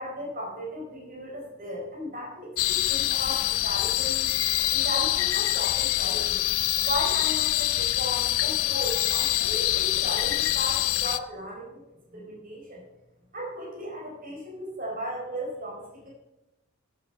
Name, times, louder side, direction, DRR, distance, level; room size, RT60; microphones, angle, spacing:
voice 1, 0.0-4.3 4.7-6.4 6.8-11.8 12.1-12.8 13.3-16.1, equal, 40° right, -3 dB, 4.2 m, -36 dB
sound 1, 2.6-11.2, left 14 dB, 70° left, 0.4 m, -25 dB
14.0 x 7.6 x 5.5 m, 0.96 s
head